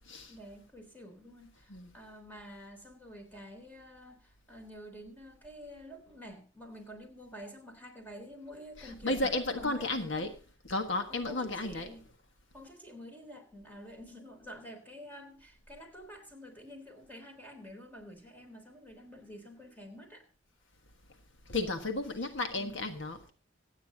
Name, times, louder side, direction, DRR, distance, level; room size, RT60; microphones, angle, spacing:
voice 1, 0.3-10.3 11.1-12.1 12.5-20.2 21.5-21.8 22.2-22.8, equal, 10° left, 3.5 m, -49 dB
voice 2, 8.8-10.3 10.7-11.9 21.5-23.3, left 2 dB, 60° left, 1.5 m, -33 dB
25.5 x 9.2 x 2.8 m
head